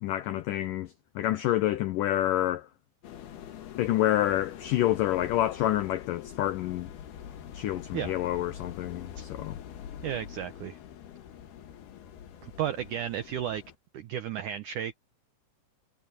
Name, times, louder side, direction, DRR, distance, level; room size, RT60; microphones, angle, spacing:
voice 1, 0.0-2.7 3.7-6.9 7.5-9.6, left 13 dB, 90° left, 1.9 m, -28 dB
sound 1, 3.0-13.8, left 9 dB, 70° left, 3.7 m, -44 dB
voice 2, 10.0-10.8 12.4-13.6 13.9-14.9, right 10 dB, 90° right, 1.7 m, -33 dB
omnidirectional pair, 4.9 m